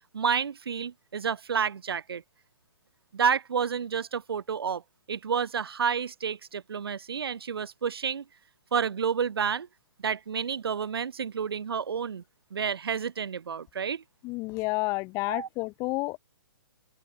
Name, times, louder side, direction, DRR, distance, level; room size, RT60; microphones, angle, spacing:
voice 1, 0.1-2.2 3.1-4.8 5.1-8.2 8.7-9.7 10.0-12.2 12.5-14.0 15.2-15.5, right 7 dB, 75° right, 2.4 m, -30 dB
voice 2, 14.2-16.2, left 24 dB, 25° left, 2.5 m, -30 dB
open air
hypercardioid pair, 160°, 13 cm